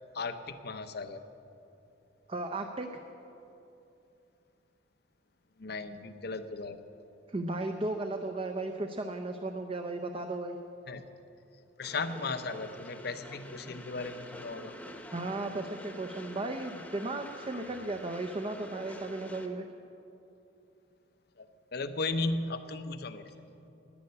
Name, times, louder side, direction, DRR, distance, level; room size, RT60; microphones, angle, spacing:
voice 1, 0.1-1.2 5.6-6.8 10.9-11.0 11.8-14.8 17.5-17.6 21.4-21.5 21.7-23.2, left 3 dB, 55° left, 10 dB, 0.8 m, -36 dB
voice 2, 2.3-2.9 7.3-10.6 15.1-19.7, right 2 dB, 30° right, 5 dB, 0.6 m, -35 dB
Train, 11.8-19.5, equal, 5° left, 1.0 m, -47 dB
11.0 x 9.7 x 9.6 m, 2.9 s
head